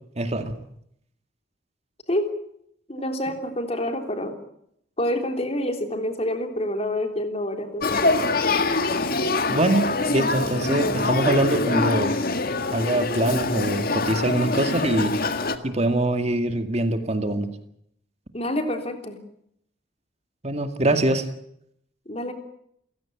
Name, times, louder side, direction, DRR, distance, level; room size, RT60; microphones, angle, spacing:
voice 1, 0.2-0.5 9.5-12.1 12.7-15.1 15.6-17.5 20.4-21.3, right 1 dB, 35° right, 8 dB, 2.1 m, -23 dB
voice 2, 2.9-4.4 5.0-8.3 18.3-19.2 22.1-22.3, left 1 dB, 30° left, 6 dB, 3.5 m, -27 dB
Male speech man speaking / Child speech kid speaking / Conversation, 7.8-15.6, left 3 dB, 50° left, 1.9 m, -24 dB
30.0 x 16.5 x 8.6 m, 0.73 s
head